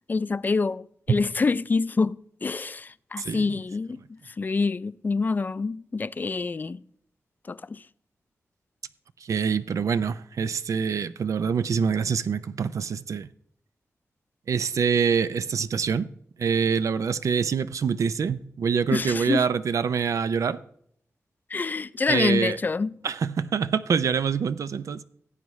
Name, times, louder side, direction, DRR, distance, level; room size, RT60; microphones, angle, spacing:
voice 1, 0.1-4.0 4.3-6.8 7.5-7.8 18.9-19.5 21.5-22.9, left 4 dB, 35° left, 0.3 m, -26 dB
voice 2, 9.2-13.3 14.5-16.1 16.4-20.6 22.1-22.6 23.0-25.0, right 6 dB, 85° right, 0.4 m, -25 dB
17.0 x 8.2 x 3.1 m
wide cardioid pair, 110°, 5 cm